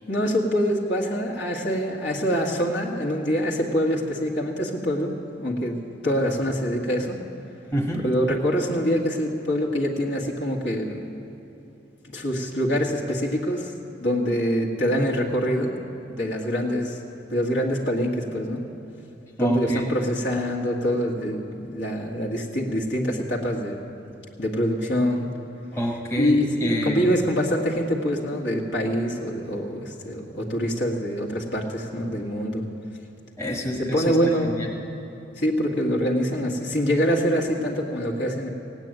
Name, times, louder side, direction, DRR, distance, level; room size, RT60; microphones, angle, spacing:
voice 1, 0.1-5.8 6.0-7.2 8.0-11.0 12.1-13.7 14.0-15.8 16.1-17.0 17.3-18.6 19.4-23.8 24.4-25.3 26.2-32.7 33.9-34.5 35.4-38.5, equal, 65° left, -1 dB, 1.9 m, -25 dB
voice 2, 7.7-8.0 19.4-19.9 25.7-27.1 33.4-34.2 34.4-34.7, equal, 15° left, 0 dB, 1.2 m, -27 dB
17.0 x 9.1 x 9.1 m, 3.0 s
head